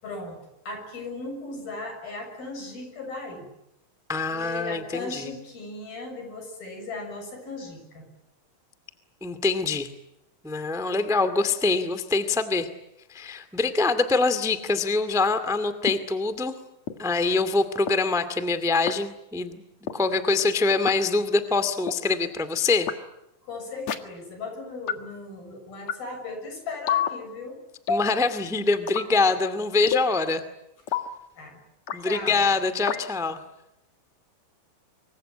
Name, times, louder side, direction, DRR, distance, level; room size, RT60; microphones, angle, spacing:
voice 1, 0.0-3.5 4.3-8.1 23.4-27.6 29.1-29.2 31.4-31.6 32.0-32.5, left 3 dB, 85° left, 5 dB, 8.7 m, -37 dB
voice 2, 4.1-5.3 9.2-9.9 10.4-12.7 13.1-16.5 17.0-19.6 19.9-22.9 27.9-30.4 31.9-33.4, left 3 dB, ahead, 11 dB, 1.0 m, -24 dB
sound 1, 15.9-16.0 16.9-17.0 17.9-18.0 18.9-19.0 19.9-20.0 20.9-21.0 21.9-22.0 22.9-23.0 23.9-24.0 24.9-25.0 25.9-26.0 26.9-27.1 27.9-28.1 28.9-29.1 29.9-30.1 30.9-31.1 31.9-32.0 32.9-33.0, left 8 dB, 55° left, 2.6 m, -27 dB
25.5 x 24.5 x 9.0 m, 0.88 s
omnidirectional pair, 4.1 m